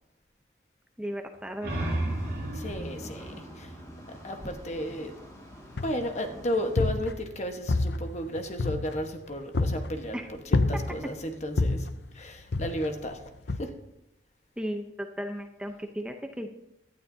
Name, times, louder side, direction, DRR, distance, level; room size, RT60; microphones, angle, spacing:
voice 1, 1.0-1.9 10.1-10.3 14.6-16.5, equal, 5° right, 4 dB, 0.6 m, -35 dB
sound 1, 1.3-4.8, right 1 dB, 55° right, 4.3 m, -34 dB
sound 2, 1.7-6.8, equal, 20° left, 2.0 m, -48 dB
voice 2, 2.5-3.7 4.2-5.1 5.8-11.9 12.1-13.2 13.5-13.7, equal, 40° left, 5 dB, 1.2 m, -33 dB
sound 3, 5.8-6.2 6.6-7.4 7.7-9.1 9.5-10.0 10.5-11.1 11.6-12.0 12.5-13.0 13.5-13.6, left 2 dB, 65° left, 0.6 m, -28 dB
17.5 x 12.0 x 2.7 m, 0.87 s
head